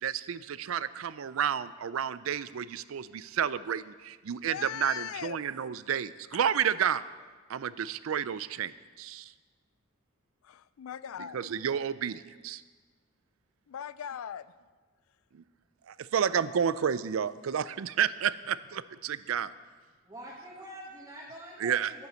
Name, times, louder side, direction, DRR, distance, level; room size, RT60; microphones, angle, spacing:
voice 1, 0.0-7.0 7.5-9.3 11.2-12.6 15.3-15.4 15.9-19.5 21.6-21.9, right 8 dB, 75° right, 16 dB, 0.4 m, -31 dB
voice 2, 4.3-5.4 10.4-11.4 13.7-14.5, left 9 dB, 85° left, 17 dB, 0.4 m, -39 dB
voice 3, 20.0-22.1, right 1 dB, 20° right, -6 dB, 1.6 m, -45 dB
10.5 x 9.3 x 6.9 m, 1.4 s
head